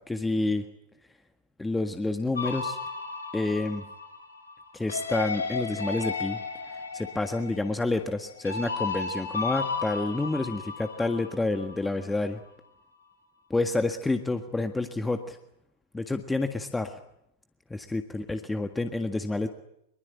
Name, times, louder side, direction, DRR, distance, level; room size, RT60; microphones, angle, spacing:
voice 1, 0.1-0.6 1.6-2.8 3.3-3.9 4.7-6.4 6.9-12.4 13.5-15.4 15.9-17.0 17.7-19.5, left 2 dB, 10° left, 7 dB, 1.7 m, -29 dB
sound 1, 2.4-11.8, left 4 dB, 75° left, 4.6 m, -34 dB
24.5 x 23.0 x 9.0 m, 0.79 s
figure-of-eight pair, 90°, 0 cm